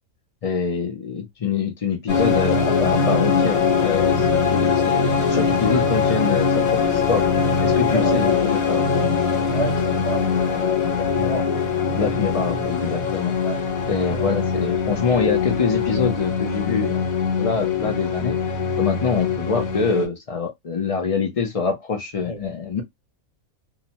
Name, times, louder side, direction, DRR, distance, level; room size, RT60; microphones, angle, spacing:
voice 1, 0.4-7.3 7.6-8.9 11.9-13.4 13.9-17.0 17.4-18.4 18.7-22.8, left 5 dB, 70° left, 0.3 m, -25 dB
sound 1, 2.1-20.1, left 5 dB, 85° left, 1.3 m, -22 dB
voice 2, 7.9-8.4 9.5-11.5 13.4-13.6 14.0-14.3 22.2-22.4, right 1 dB, 35° left, 1.0 m, -29 dB
2.7 x 2.1 x 2.7 m
omnidirectional pair, 1.4 m